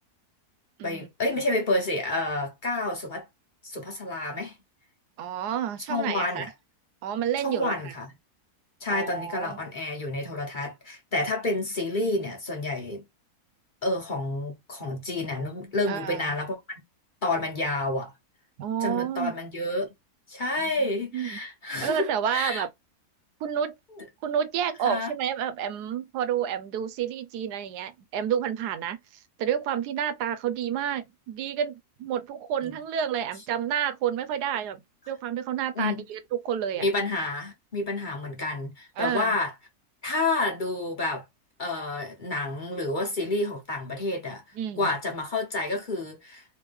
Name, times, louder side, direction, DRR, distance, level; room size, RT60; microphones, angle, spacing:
voice 1, 0.8-3.2 3.6-4.6 5.9-6.5 7.4-8.1 8.8-13.0 13.8-16.8 17.2-18.1 18.8-19.9 20.3-22.6 24.8-25.1 32.6-32.8 35.7-36.0 36.8-39.5 40.0-41.2 41.6-44.4 44.8-46.4, left 2 dB, 35° left, 1.2 m, -29 dB
voice 2, 5.2-6.4 7.0-7.9 8.9-9.6 15.9-16.3 18.6-19.3 20.6-20.9 21.1-21.4 21.8-22.7 23.4-23.7 24.2-34.8 35.1-36.9 39.0-39.4 44.6-44.9, right 9 dB, 90° right, 1.2 m, -30 dB
3.2 x 3.1 x 3.4 m
omnidirectional pair, 1.7 m